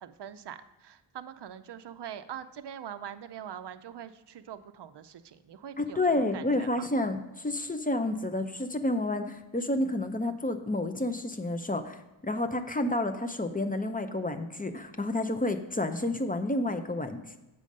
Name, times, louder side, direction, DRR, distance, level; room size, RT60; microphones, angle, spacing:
voice 1, 0.0-6.9, right 9 dB, 55° right, 11 dB, 0.5 m, -43 dB
voice 2, 5.8-17.4, left 2 dB, 20° left, 7 dB, 0.5 m, -30 dB
7.5 x 5.1 x 5.2 m, 1.0 s
wide cardioid pair, 60°, 49 cm